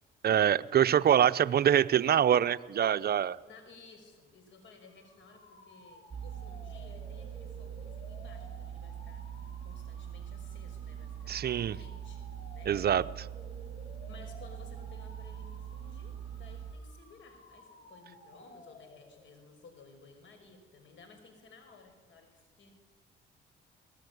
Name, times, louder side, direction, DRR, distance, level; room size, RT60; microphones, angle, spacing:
voice 1, 0.2-3.4 11.3-11.8 12.7-13.3, right 9 dB, 50° right, 14 dB, 0.7 m, -25 dB
voice 2, 3.4-9.3 9.6-12.3 12.5-12.7 14.1-22.7, left 4 dB, 70° left, 7 dB, 5.5 m, -56 dB
sound 1, 4.8-19.5, left 2 dB, 45° left, 6.7 m, -55 dB
sound 2, 6.1-16.7, right 9 dB, 30° right, 4.5 m, -43 dB
22.0 x 19.0 x 9.4 m, 1.5 s
cardioid pair, 90°, 20 cm